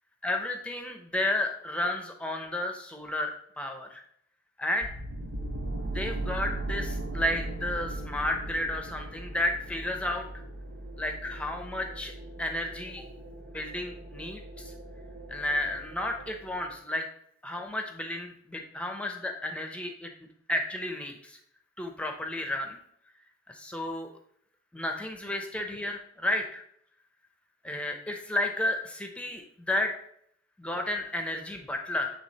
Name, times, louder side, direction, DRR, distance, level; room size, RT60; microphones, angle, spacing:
voice 1, 0.2-4.0 4.6-4.9 5.8-10.3 11.0-12.1 12.4-13.0 13.5-14.7 15.3-17.0 17.4-20.1 20.5-21.4 21.8-22.8 23.5-24.1 24.7-26.6 27.6-29.9 30.6-32.1, left 1 dB, 5° left, 3 dB, 0.7 m, -32 dB
sound 1, 4.8-16.8, right 1 dB, 75° right, 0.9 m, -38 dB
8.3 x 3.5 x 4.1 m, 0.67 s
head